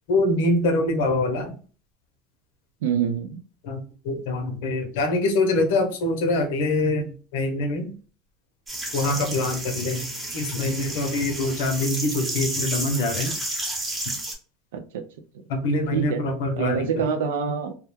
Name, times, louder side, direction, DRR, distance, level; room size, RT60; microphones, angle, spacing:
voice 1, 0.1-1.5 3.6-7.9 8.9-10.1 10.3-13.3 15.5-17.0, left 2 dB, 80° left, 6 dB, 0.6 m, -24 dB
voice 2, 2.8-3.4 14.7-15.1 15.9-16.2 16.6-17.8, right 7 dB, 90° right, 7 dB, 0.3 m, -26 dB
sound 1, 8.7-14.3, right 1 dB, 20° right, 0.8 m, -31 dB
2.2 x 2.1 x 3.0 m, 0.40 s
supercardioid pair, 110°, 0 cm